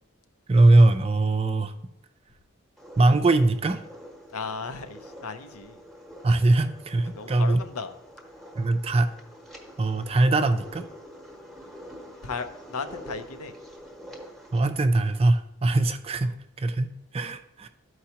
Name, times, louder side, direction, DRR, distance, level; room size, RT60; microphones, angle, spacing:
voice 1, 0.5-1.7 3.0-3.8 6.2-7.6 8.6-9.1 9.8-10.8 14.5-17.7, right 2 dB, 25° right, 9 dB, 0.4 m, -21 dB
sound 1, 2.8-14.7, equal, ahead, 0.9 m, -46 dB
voice 2, 4.3-5.8 7.0-7.9 12.2-13.5 16.2-16.4, left 5 dB, 90° left, 9 dB, 0.7 m, -36 dB
12.5 x 4.6 x 2.9 m, 0.84 s
head